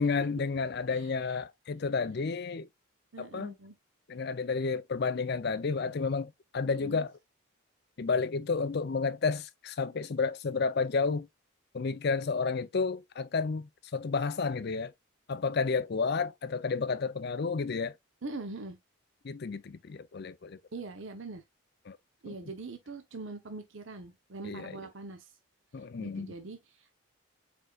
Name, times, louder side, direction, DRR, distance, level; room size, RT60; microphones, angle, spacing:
voice 1, 0.0-2.7 3.2-3.5 4.1-7.1 8.0-11.3 11.7-14.9 15.3-17.9 19.2-20.6 21.9-22.0 22.3-22.4 24.4-24.7 25.7-26.3, left 4 dB, 50° left, 0.5 m, -31 dB
voice 2, 3.1-3.7 6.6-7.1 18.2-18.8 20.7-21.4 22.2-25.3 26.0-27.0, right 3 dB, 60° right, 0.9 m, -43 dB
4.6 x 4.4 x 2.4 m
head